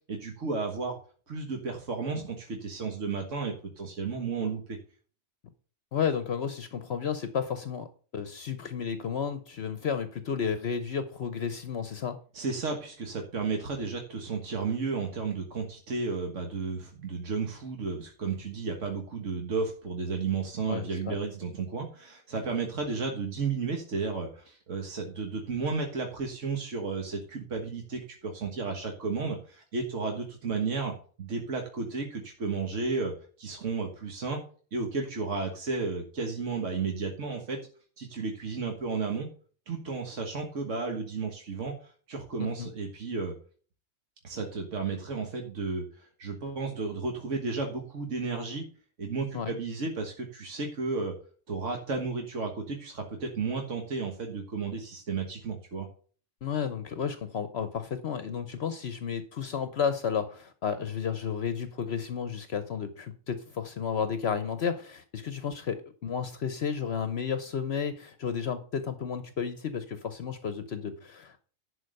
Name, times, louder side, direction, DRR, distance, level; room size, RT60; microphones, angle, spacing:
voice 1, 0.1-1.0 1.3-4.8 12.3-30.9 31.2-33.1 33.4-34.4 34.7-37.6 38.0-39.3 39.7-43.3 44.2-48.6 49.0-51.1 51.5-55.9, right 4 dB, 85° right, 2 dB, 1.8 m, -33 dB
voice 2, 5.9-7.9 8.1-12.2 20.7-21.2 42.4-42.7 49.3-49.5 56.4-71.4, left 7 dB, 60° left, 11 dB, 1.0 m, -32 dB
11.0 x 4.7 x 6.4 m, 0.42 s
omnidirectional pair, 1.2 m